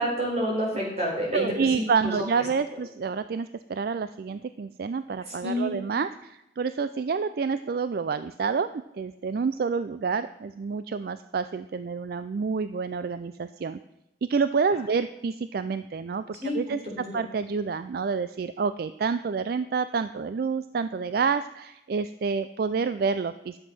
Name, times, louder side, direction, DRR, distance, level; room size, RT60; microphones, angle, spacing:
voice 1, 0.0-1.4 1.7-2.1 5.2-5.7 16.4-16.6 17.0-17.1, equal, 35° right, -3 dB, 4.3 m, -28 dB
voice 2, 1.3-8.7 8.9-13.8 14.3-23.6, right 5 dB, 55° right, 12 dB, 0.4 m, -28 dB
12.0 x 7.5 x 6.1 m, 0.89 s
head